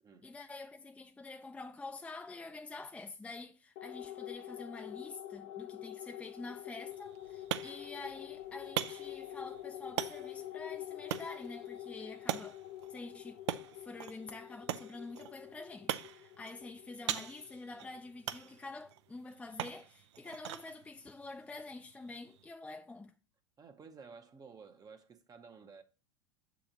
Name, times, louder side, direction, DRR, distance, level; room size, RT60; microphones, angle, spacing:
voice 1, 0.2-12.6 12.9-13.4 13.7-23.1, left 3 dB, 10° left, 0.4 m, -47 dB
sound 1, 3.8-18.5, left 13 dB, 55° left, 0.7 m, -47 dB
sound 2, 6.9-22.5, right 12 dB, 70° right, 0.5 m, -43 dB
voice 2, 23.6-25.8, right 5 dB, 25° right, 0.7 m, -53 dB
6.9 x 2.9 x 4.9 m
hypercardioid pair, 90°, 15 cm